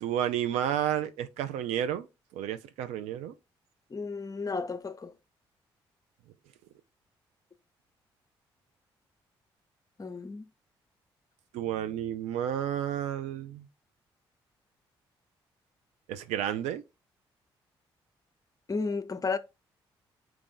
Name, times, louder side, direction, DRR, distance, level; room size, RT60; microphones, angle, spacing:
voice 1, 0.0-2.1 2.3-3.3 11.5-13.6 16.1-16.8, right 10 dB, 75° right, 0.4 m, -31 dB
voice 2, 3.9-5.1 10.0-10.5 18.7-19.4, left 4 dB, 30° left, 0.6 m, -33 dB
4.6 x 2.5 x 3.8 m
hypercardioid pair, 45°, 12 cm